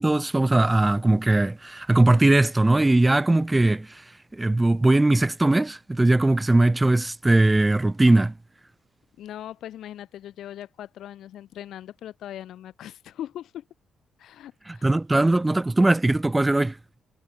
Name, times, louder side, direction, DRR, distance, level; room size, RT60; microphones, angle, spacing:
voice 1, 0.0-4.0 4.3-8.3 14.7-16.8, right 2 dB, 15° right, 0.4 m, -20 dB
voice 2, 9.2-13.6 14.2-15.3, left 11 dB, 75° left, 4.2 m, -40 dB
cardioid pair, 90°, 0 cm